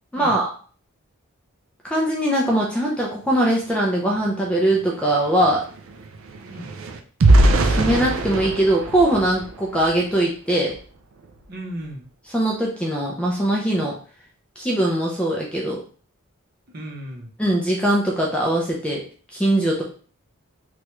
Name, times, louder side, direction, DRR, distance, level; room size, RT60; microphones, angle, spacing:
voice 1, 0.1-0.5 1.8-5.6 7.6-10.8 12.3-14.0 14.6-15.8 17.4-19.0 19.3-19.8, right 1 dB, 5° left, -3 dB, 0.4 m, -21 dB
sound 1, 4.2-4.3 4.6-10.1 10.6-10.8 11.2-11.4, right 2 dB, 65° right, 0.4 m, -22 dB
voice 2, 11.5-12.0 16.7-17.3, right 1 dB, 45° right, 0 dB, 0.7 m, -35 dB
3.2 x 2.3 x 3.0 m, 0.42 s
head